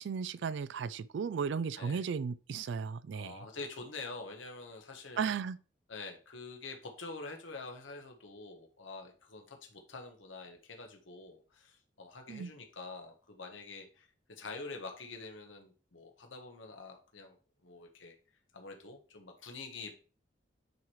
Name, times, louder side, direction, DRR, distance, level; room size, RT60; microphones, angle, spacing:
voice 1, 0.0-3.4 5.2-5.6 12.3-12.5, right 6 dB, 65° right, 0.3 m, -35 dB
voice 2, 3.1-5.3 5.9-17.4 17.6-18.1 18.5-19.9, left 3 dB, 85° left, 1.3 m, -46 dB
9.3 x 3.2 x 4.6 m
head